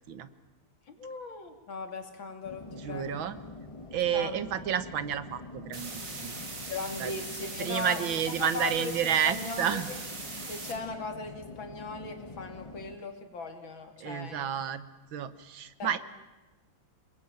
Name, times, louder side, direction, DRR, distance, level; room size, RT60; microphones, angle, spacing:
voice 1, 0.9-3.2 4.1-4.4 6.7-8.9 9.3-10.0 10.5-14.5 15.8-16.0, left 3 dB, 85° left, 5 dB, 3.6 m, -38 dB
sound 1, 2.4-13.0, left 3 dB, 20° left, 1.4 m, -45 dB
voice 2, 2.7-3.4 3.9-6.4 7.0-7.1 7.6-9.9 14.0-14.8 15.1-16.0, right 9 dB, 85° right, 13 dB, 2.0 m, -30 dB
sound 2, 5.7-10.7, right 3 dB, 65° right, 4.1 m, -40 dB
28.5 x 20.5 x 9.0 m, 1.1 s
omnidirectional pair, 2.1 m